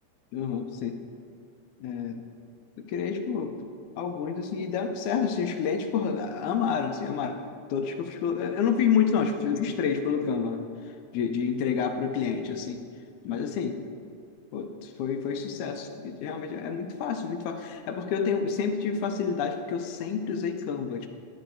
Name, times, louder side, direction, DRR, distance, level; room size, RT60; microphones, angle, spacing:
voice 1, 0.3-1.0 1.8-2.2 2.8-3.5 4.0-7.4 7.7-10.7 11.1-12.8 13.2-13.8 14.5-15.8 16.2-21.1, left 6 dB, 80° left, 6 dB, 2.0 m, -28 dB
11.5 x 10.5 x 2.6 m, 2.2 s
omnidirectional pair, 3.6 m